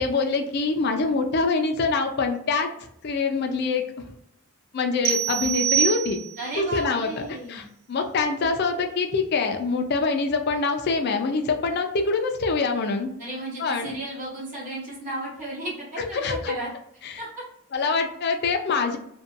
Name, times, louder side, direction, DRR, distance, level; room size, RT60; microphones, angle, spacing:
voice 1, 0.0-2.7 3.0-3.8 4.7-6.2 6.5-13.1 13.6-14.0 16.0-16.5 17.0-17.2 17.7-19.0, left 4 dB, 50° left, 4 dB, 0.4 m, -25 dB
sound 1, 5.0-6.6, right 9 dB, 80° right, 0.3 m, -25 dB
voice 2, 6.4-7.7 13.2-16.7 17.2-17.4, right 1 dB, 40° right, -7 dB, 1.0 m, -34 dB
2.6 x 2.2 x 2.4 m, 0.73 s
head